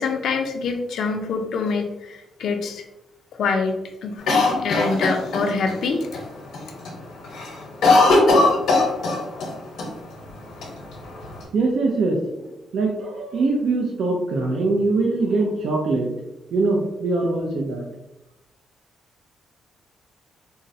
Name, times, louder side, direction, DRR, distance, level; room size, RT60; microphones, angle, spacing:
voice 1, 0.0-2.8 3.3-4.2 4.6-6.1, left 4 dB, 70° left, 4 dB, 0.5 m, -25 dB
Cough, 4.3-5.7 6.1-6.2 6.5-6.9 7.2-9.5 9.8-9.9 10.6-11.4, left 2 dB, 85° left, 0.8 m, -19 dB
voice 2, 11.5-16.1 16.5-17.9, right 3 dB, 65° right, -1 dB, 0.5 m, -22 dB
3.7 x 2.0 x 2.6 m, 0.93 s
cardioid pair, 130°, 0 cm